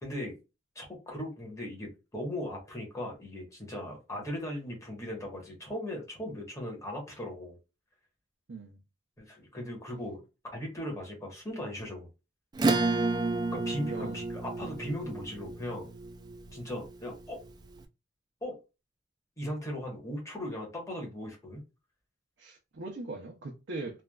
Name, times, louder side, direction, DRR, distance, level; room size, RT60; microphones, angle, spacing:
voice 1, 0.0-0.3 0.7-7.6 9.2-10.2 10.5-12.1 13.5-15.9 16.5-17.4 18.4-18.5 19.4-21.6, left 1 dB, 15° left, 1.2 m, -38 dB
voice 2, 8.5-8.8 13.9-14.2 22.4-24.0, right 3 dB, 85° right, 0.6 m, -40 dB
Acoustic guitar / Strum, 12.6-17.5, right 3 dB, 25° right, 0.3 m, -31 dB
3.3 x 2.3 x 2.3 m
head